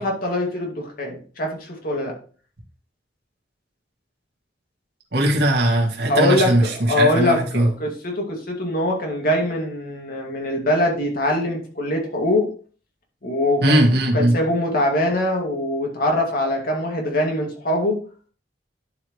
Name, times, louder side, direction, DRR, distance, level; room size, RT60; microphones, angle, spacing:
voice 1, 0.0-2.1 6.1-12.5 13.2-13.8 14.1-18.0, left 1 dB, 55° left, 0 dB, 2.4 m, -23 dB
voice 2, 5.1-7.7 13.6-14.3, right 1 dB, 65° right, -1 dB, 2.2 m, -19 dB
11.5 x 4.9 x 3.2 m, 0.39 s
head